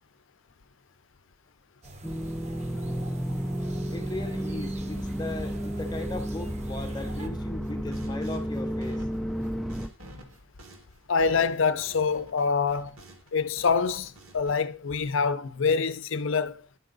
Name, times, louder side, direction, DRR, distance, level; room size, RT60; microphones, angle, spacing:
sound 1, 1.8-7.3, right 1 dB, 30° right, 0.8 m, -45 dB
sound 2, 2.0-9.9, equal, ahead, 0.3 m, -32 dB
voice 1, 3.9-9.1, left 3 dB, 20° left, 0.8 m, -38 dB
sound 3, 7.6-13.3 13.6-14.5, equal, 70° right, 1.6 m, -49 dB
voice 2, 11.1-12.9 13.3-16.6, left 5 dB, 60° left, 0.5 m, -26 dB
11.0 x 4.8 x 3.9 m
head